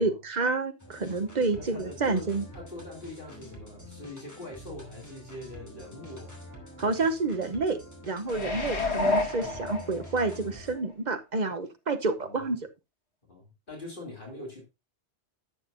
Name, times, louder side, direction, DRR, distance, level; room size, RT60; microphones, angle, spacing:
voice 1, 0.0-2.5 6.8-7.8 8.1-12.6, right 3 dB, 45° right, 8 dB, 0.8 m, -29 dB
sound 1, 0.8-10.8, equal, 15° left, 2.5 m, -46 dB
voice 2, 1.5-6.4 12.2-12.5 13.3-14.6, left 2 dB, 45° left, -1 dB, 2.9 m, -43 dB
sound 2, 8.3-10.4 10.8-10.9, left 2 dB, 70° left, 1.9 m, -29 dB
11.0 x 7.7 x 2.6 m, 0.25 s
omnidirectional pair, 1.2 m